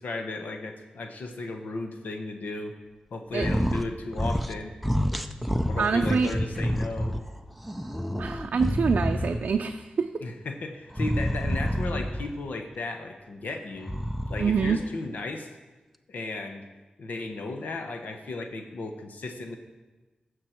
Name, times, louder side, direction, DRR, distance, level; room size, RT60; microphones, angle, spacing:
voice 1, 0.0-2.8 3.1-4.8 5.7-7.2 10.2-13.9 14.3-15.5 16.1-16.6 17.0-19.6, left 2 dB, 90° left, 5 dB, 1.0 m, -35 dB
sound 1, 3.3-3.9 4.1-4.6 4.8-7.2 7.6-9.6 10.9-12.3 13.8-14.8, equal, ahead, 0.5 m, -28 dB
voice 2, 5.8-6.3 8.2-10.1 14.4-14.8, right 5 dB, 70° right, 4 dB, 0.5 m, -25 dB
15.5 x 6.6 x 4.4 m, 1.2 s
wide cardioid pair, 100°, 3 cm